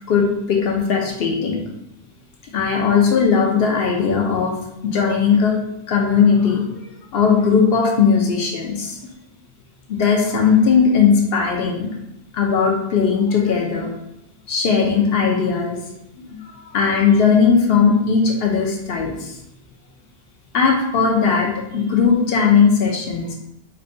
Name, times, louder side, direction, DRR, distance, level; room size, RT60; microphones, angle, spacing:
voice 1, 0.1-1.6 2.5-4.6 4.8-5.5 5.9-6.6 7.1-9.0 9.9-11.9 12.3-13.9 14.5-15.8 16.2-16.4 16.7-19.3 20.5-23.3, left 6 dB, 65° left, 0 dB, 0.8 m, -18 dB
4.3 x 2.2 x 2.6 m, 0.85 s
omnidirectional pair, 1.1 m